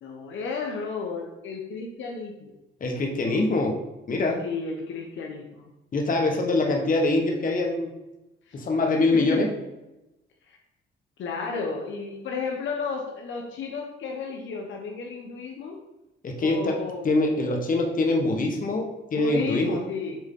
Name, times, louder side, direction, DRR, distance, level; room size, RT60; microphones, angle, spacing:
voice 1, 0.0-2.5 4.4-5.7 6.5-6.8 8.5-8.6 9.1-9.5 10.5-10.6 11.2-15.8 16.4-17.1 19.1-20.2, left 4 dB, 75° left, 1 dB, 1.0 m, -33 dB
voice 2, 2.8-3.8 4.1-4.4 5.9-7.9 8.5-9.5 16.2-16.8 17.0-19.8, left 2 dB, 45° left, 2 dB, 1.3 m, -24 dB
7.2 x 3.5 x 3.7 m, 0.98 s
cardioid pair, 90°, 20 cm